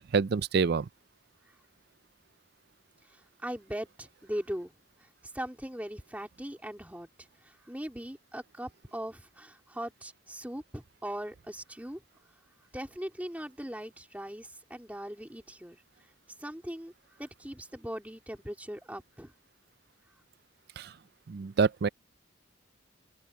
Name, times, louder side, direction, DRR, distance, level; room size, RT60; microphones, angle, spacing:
voice 1, 0.1-0.9 20.8-20.9 21.3-21.9, right 5 dB, 50° right, 0.4 m, -26 dB
voice 2, 3.1-4.7 5.0-12.0 12.7-15.8 16.4-16.9 17.2-19.3, equal, 5° right, 3.2 m, -40 dB
head